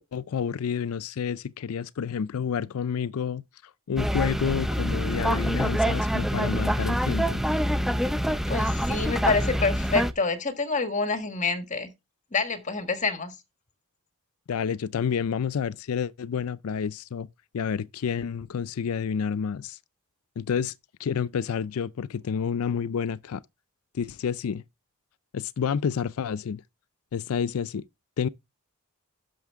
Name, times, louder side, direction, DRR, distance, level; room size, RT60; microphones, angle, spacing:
voice 1, 0.1-3.4 3.9-7.4 14.5-17.3 17.5-19.8 20.4-20.7 21.0-23.4 23.9-24.6 25.3-26.6 27.1-27.8 28.2-28.3, left 7 dB, 75° left, 0.4 m, -29 dB
sound 1, 4.0-10.1, equal, ahead, 0.4 m, -26 dB
voice 2, 8.5-11.9 12.3-13.3, left 4 dB, 35° left, 1.5 m, -27 dB
11.0 x 6.4 x 3.5 m
head